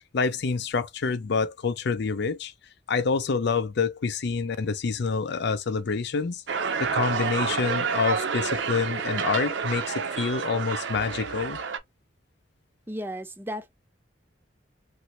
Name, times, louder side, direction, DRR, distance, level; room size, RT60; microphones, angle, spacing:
voice 1, 0.1-2.5 2.9-6.4 6.8-11.6, left 5 dB, 65° left, 0.5 m, -27 dB
sound 1, 6.5-11.8, right 5 dB, 70° right, 0.6 m, -29 dB
voice 2, 12.9-13.7, equal, 10° right, 0.4 m, -34 dB
3.1 x 2.6 x 2.8 m
head